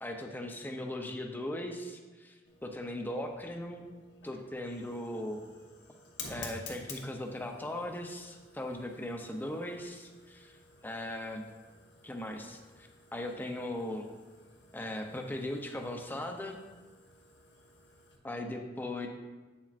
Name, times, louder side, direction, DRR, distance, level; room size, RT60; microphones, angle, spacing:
voice 1, 0.0-2.3 2.6-3.9 4.2-5.4 6.3-10.5 10.8-11.5 12.0-14.1 14.7-16.6 18.2-19.1, left 1 dB, 10° left, 3 dB, 0.6 m, -38 dB
Fire, 2.4-18.2, left 3 dB, 70° left, 1.2 m, -52 dB
8.7 x 7.2 x 2.5 m, 1.3 s
head